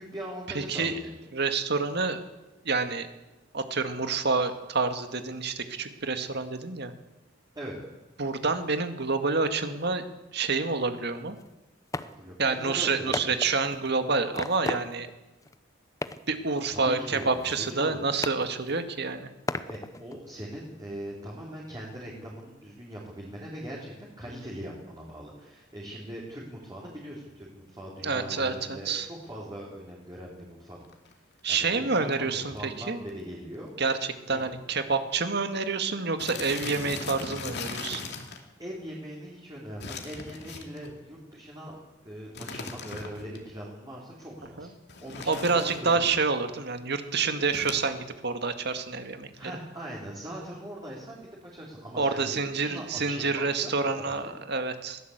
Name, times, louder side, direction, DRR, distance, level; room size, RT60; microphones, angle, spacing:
voice 1, 0.0-1.1 7.6-7.8 12.2-13.5 16.7-18.0 19.7-30.8 31.5-33.7 34.3-34.5 38.6-41.8 42.0-44.7 45.0-46.1 49.3-54.3, equal, 20° right, -4 dB, 3.9 m, -41 dB
voice 2, 0.5-1.0 1.3-2.2 2.7-3.1 3.5-6.9 8.2-10.0 10.3-11.4 12.4-15.1 16.3-19.3 28.0-29.1 31.4-33.0 33.8-38.0 44.6-44.7 45.3-49.5 52.0-55.0, right 4 dB, 60° right, 8 dB, 2.0 m, -28 dB
sound 1, 10.9-11.0 11.4-11.5 11.9-12.1 12.5-12.6 13.1-13.9 14.3-15.2 15.4-15.6 16.0-16.4 16.6-17.9 18.2-19.0 19.5-20.4, left 2 dB, 15° left, 0.7 m, -36 dB
sound 2, 30.8-31.1 31.8-31.9 32.1-32.2 32.4-32.7 33.1-33.2 33.5-33.6 34.4-34.5 34.7-34.9 35.2-35.3 36.2-38.4 39.8-41.0 42.3-43.4 44.9-46.0 47.5-47.8, left 4 dB, 60° left, 2.7 m, -39 dB
21.5 x 16.5 x 8.1 m, 1.1 s
head